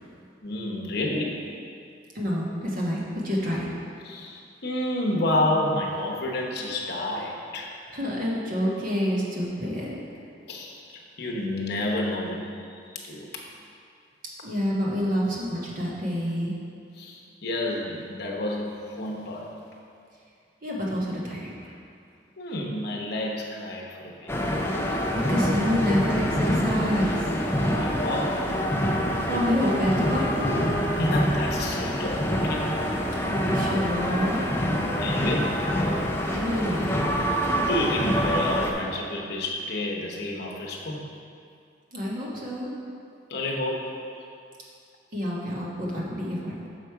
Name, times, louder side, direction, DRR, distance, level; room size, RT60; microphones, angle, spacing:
voice 1, 0.4-1.4 4.0-7.7 10.5-13.3 16.9-19.5 22.4-24.3 27.7-28.5 31.0-32.8 35.0-35.6 37.4-41.1 43.3-43.9, left 1 dB, 60° left, -2 dB, 0.9 m, -30 dB
voice 2, 2.1-3.7 7.9-10.0 14.4-16.5 20.6-21.7 25.3-27.3 29.3-30.6 33.2-34.4 36.3-36.8 41.9-42.7 45.1-46.5, equal, 50° right, -5 dB, 1.3 m, -28 dB
sound 1, 24.3-38.7, equal, 15° left, 0.5 m, -26 dB
6.5 x 4.9 x 4.6 m, 2.5 s
head